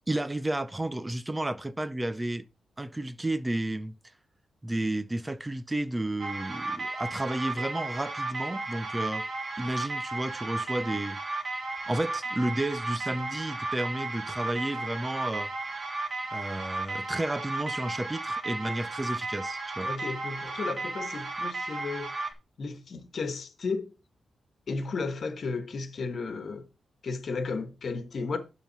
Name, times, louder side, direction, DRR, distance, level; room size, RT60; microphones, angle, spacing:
voice 1, 0.1-2.4 2.8-3.9 4.6-9.3 9.6-11.2 11.9-15.5 16.3-19.9, right 1 dB, 15° right, 0.6 m, -32 dB
sound 1, 6.2-22.3, right 2 dB, 35° right, 1.4 m, -34 dB
voice 2, 19.8-22.1 22.6-23.9 24.7-26.7 27.0-28.4, left 4 dB, 55° left, 1.4 m, -34 dB
12.0 x 4.0 x 4.1 m
cardioid pair, 105°, 0 cm